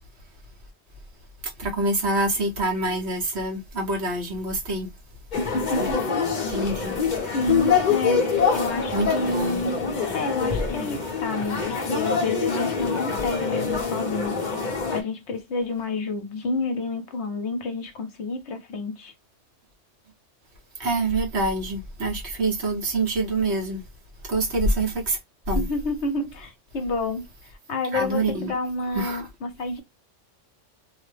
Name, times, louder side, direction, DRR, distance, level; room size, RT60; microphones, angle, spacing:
voice 1, 1.6-4.9 5.8-5.9 6.5-7.0 8.9-9.7 20.8-23.8 24.3-25.2 25.5-25.7 27.9-28.5 28.9-29.2, right 2 dB, 60° right, 1.3 m, -26 dB
sound 1, 5.3-15.0, left 5 dB, 40° left, 0.8 m, -25 dB
voice 2, 5.4-6.0 7.3-9.8 10.1-14.4 14.9-19.1 25.5-27.3 27.7-29.8, left 2 dB, 65° left, 1.0 m, -29 dB
3.0 x 2.1 x 3.2 m
omnidirectional pair, 1.3 m